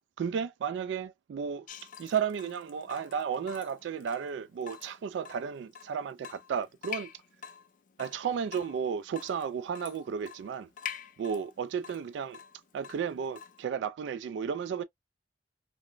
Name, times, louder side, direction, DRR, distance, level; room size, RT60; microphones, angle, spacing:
voice 1, 0.2-1.7 2.0-7.1 8.0-10.7 11.2-12.4 12.7-14.8, right 7 dB, 85° right, 0.3 m, -33 dB
Water tap faucet / Drip, 1.7-13.6, left 8 dB, 45° left, 0.4 m, -47 dB
2.9 x 2.1 x 2.5 m
head